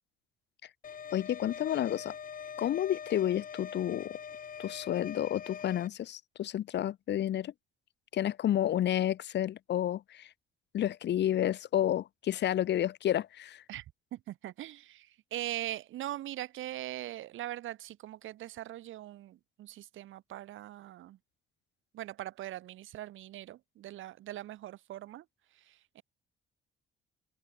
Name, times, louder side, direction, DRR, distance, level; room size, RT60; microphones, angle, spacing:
sound 1, 0.8-5.9, left 7 dB, 45° left, 4.5 m, -43 dB
voice 1, 1.1-2.1 2.6-4.2 4.6-7.5 8.1-10.3 10.7-13.6, left 11 dB, 60° left, 1.4 m, -30 dB
voice 2, 14.1-21.2 21.9-25.2 25.7-26.0, right 14 dB, 80° right, 7.2 m, -41 dB
open air
cardioid pair, 125°, 20 cm